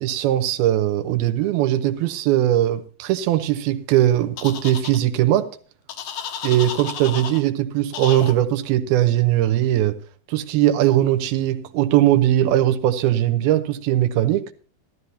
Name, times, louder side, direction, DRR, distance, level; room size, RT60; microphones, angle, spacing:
voice 1, 0.0-5.6 6.4-10.0 10.3-14.5, right 13 dB, 85° right, 2.8 m, -20 dB
sound 1, 4.4-5.0 5.9-7.4 7.9-8.3, left 8 dB, 65° left, 2.4 m, -32 dB
14.5 x 14.0 x 2.7 m
omnidirectional pair, 4.3 m